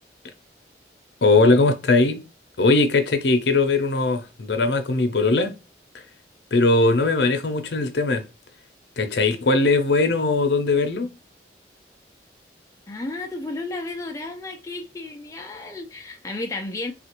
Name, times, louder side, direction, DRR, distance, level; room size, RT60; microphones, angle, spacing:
voice 1, 1.2-2.2 2.6-5.6 6.5-8.2 9.0-11.1, left 3 dB, 75° left, 0.6 m, -20 dB
voice 2, 12.9-16.9, left 2 dB, 20° left, 0.3 m, -33 dB
3.5 x 2.4 x 3.0 m
head